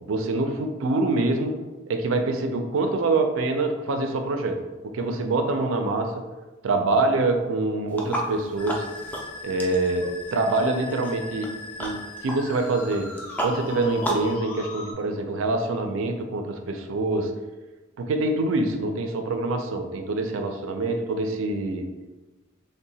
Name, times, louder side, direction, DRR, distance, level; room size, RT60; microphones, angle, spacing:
voice 1, 0.0-1.6 1.9-6.3 6.6-8.9 9.4-13.1 13.4-17.3 18.0-22.1, right 2 dB, 70° right, 5 dB, 0.4 m, -25 dB
sound 1, 7.9-14.3, right 1 dB, 10° left, 0.4 m, -34 dB
Musical instrument, 8.6-14.9, left 3 dB, 80° left, 0.5 m, -39 dB
2.7 x 2.1 x 3.9 m, 1.2 s
head